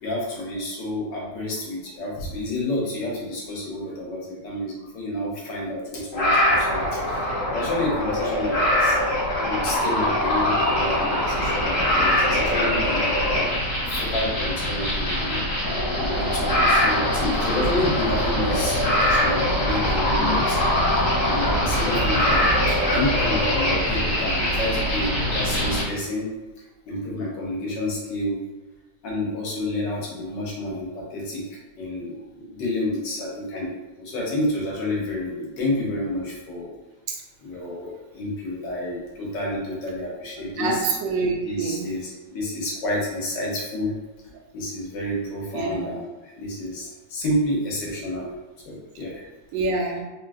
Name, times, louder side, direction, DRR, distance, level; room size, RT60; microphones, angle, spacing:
voice 1, 0.0-7.2 7.5-13.6 13.9-15.4 16.0-26.3 26.9-28.4 29.0-31.4 31.8-33.7 34.0-36.7 37.4-40.8 41.4-43.9 44.5-48.3 48.6-49.2, left 1 dB, 80° left, -4 dB, 1.6 m, -29 dB
sound 1, 6.1-25.8, left 1 dB, 40° left, 0.9 m, -22 dB
voice 2, 40.6-41.9 45.5-45.8 49.5-50.0, right 3 dB, 90° right, 1 dB, 1.3 m, -26 dB
3.7 x 2.4 x 2.5 m, 1.1 s
omnidirectional pair, 2.0 m